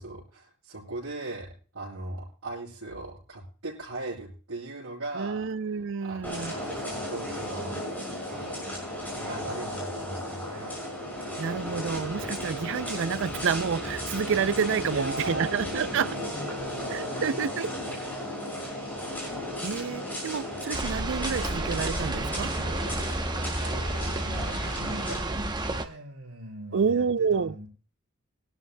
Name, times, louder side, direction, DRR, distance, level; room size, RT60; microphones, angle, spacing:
voice 1, 0.0-7.8 8.3-8.9 9.2-10.8 14.9-17.2 23.6-27.7, right 2 dB, 85° right, 5.0 m, -40 dB
voice 2, 5.2-6.5 11.4-16.2 16.9-17.8 19.6-22.5 26.7-27.6, right 6 dB, 60° right, 0.4 m, -29 dB
sound 1, 6.2-25.2, left 1 dB, 10° left, 6.1 m, -35 dB
sound 2, 20.7-25.9, right 2 dB, 20° right, 0.8 m, -31 dB
22.5 x 12.0 x 2.2 m
head